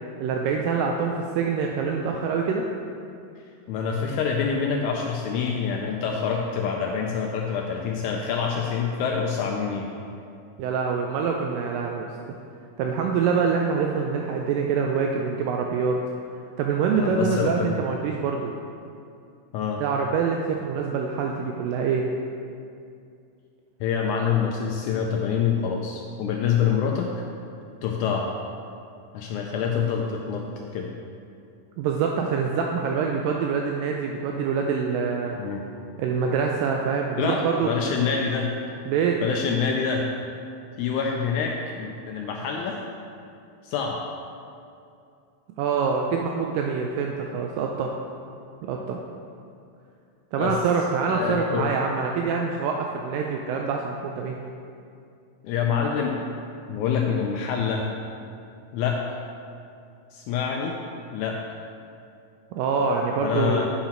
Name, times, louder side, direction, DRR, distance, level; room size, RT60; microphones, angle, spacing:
voice 1, 0.2-2.7 10.6-12.1 12.8-16.0 16.6-18.5 19.8-22.1 31.8-35.4 36.0-37.7 38.0-38.1 38.9-39.2 45.6-47.9 48.6-49.0 50.3-54.4 62.5-63.7, right 5 dB, 85° right, 1 dB, 2.2 m, -25 dB
voice 2, 3.7-9.9 17.0-17.8 19.5-19.8 23.8-27.1 27.8-28.3 29.1-30.5 30.7-30.9 35.4-35.6 37.2-38.5 39.2-40.1 40.8-42.8 43.6-44.0 50.4-50.5 51.1-51.7 55.4-56.2 56.7-57.9 58.7-59.0 60.1-60.8 61.1-61.4 63.2-63.7, left 6 dB, 85° left, 0 dB, 1.7 m, -26 dB
9.0 x 5.7 x 4.4 m, 2.5 s
omnidirectional pair, 3.9 m